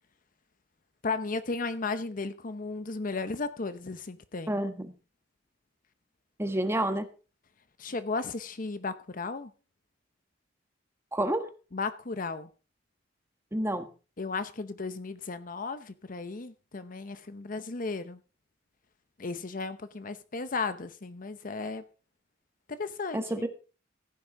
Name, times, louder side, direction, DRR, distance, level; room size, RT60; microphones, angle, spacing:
voice 1, 1.0-4.6 7.8-9.5 11.7-12.5 14.2-18.2 19.2-21.8 22.7-23.5, left 4 dB, 50° left, 0.8 m, -35 dB
voice 2, 4.5-4.9 6.4-7.1 11.1-11.5 13.5-13.9 23.1-23.5, right 1 dB, 15° right, 1.3 m, -29 dB
15.5 x 9.1 x 3.8 m
head